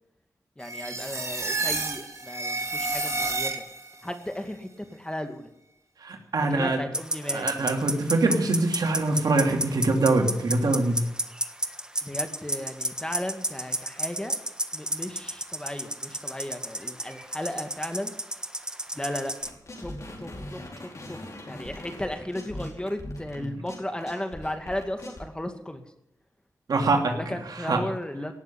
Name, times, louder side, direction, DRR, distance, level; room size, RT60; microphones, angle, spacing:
voice 1, 0.6-3.6 4.0-5.5 6.5-7.5 12.0-14.4 14.7-18.1 18.9-19.3 19.8-21.2 21.5-25.8 27.0-28.3, left 1 dB, 15° left, 7 dB, 2.2 m, -35 dB
sound 1, 0.6-4.0, right 3 dB, 50° right, 2.9 m, -30 dB
voice 2, 6.0-6.8 7.3-11.0 23.4-23.5 26.7-27.2 27.5-27.8, right 2 dB, 80° right, 3 dB, 2.8 m, -24 dB
sound 2, 6.9-19.5, right 1 dB, 10° right, 1.4 m, -32 dB
sound 3, 19.5-25.2, left 1 dB, 50° left, 4.5 m, -40 dB
18.0 x 7.4 x 9.8 m, 0.85 s
cardioid pair, 60°, 7 cm